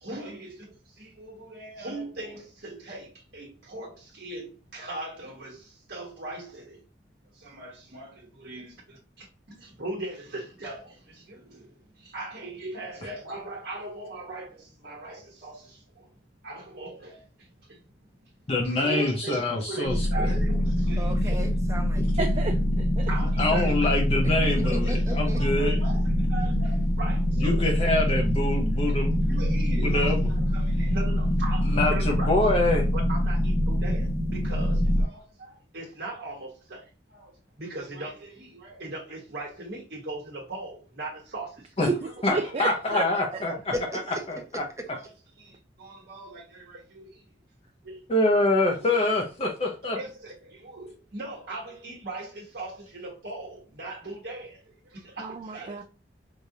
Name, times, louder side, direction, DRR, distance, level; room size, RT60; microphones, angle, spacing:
voice 1, 0.0-0.5 1.0-5.6 5.9-6.8 7.4-9.0 9.6-11.6 12.0-15.8 16.4-17.2 18.7-21.3 23.1-24.0 24.4-27.7 29.2-32.3 32.9-36.8 37.1-37.3 37.6-41.5 41.8-42.5 43.0-43.1 44.9-45.1 45.4-45.5 45.8-47.1 47.8-48.0 48.8-48.9 49.9-54.6 54.9-55.8, right 2 dB, 60° right, 1.1 m, -39 dB
voice 2, 18.5-20.4 23.4-25.8 27.4-29.2 29.7-30.3 31.7-32.9 41.8-41.9 42.2-43.7 44.3-44.4 48.1-50.0, left 2 dB, 35° left, 0.7 m, -25 dB
sound 1, 19.9-35.0, equal, 65° left, 1.1 m, -24 dB
voice 3, 21.0-22.3 24.2-25.4 43.7-44.4, right 1 dB, 15° right, 0.8 m, -36 dB
voice 4, 22.2-23.1 41.9-43.0 55.2-55.8, right 4 dB, 35° right, 0.4 m, -31 dB
4.8 x 2.5 x 2.7 m
head